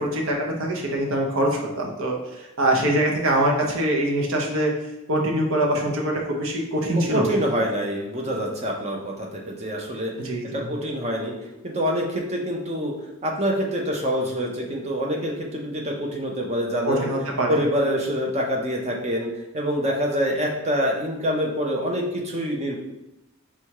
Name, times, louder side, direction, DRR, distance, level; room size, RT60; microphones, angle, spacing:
voice 1, 0.0-4.7 5.1-7.3 10.2-10.7 16.9-17.6, right 1 dB, 60° right, 0 dB, 0.8 m, -24 dB
voice 2, 7.0-10.1 10.5-11.3 11.6-12.9 13.2-17.1 17.5-19.3 19.5-22.8, equal, 30° right, 0 dB, 0.7 m, -26 dB
4.2 x 2.3 x 4.6 m, 0.92 s
head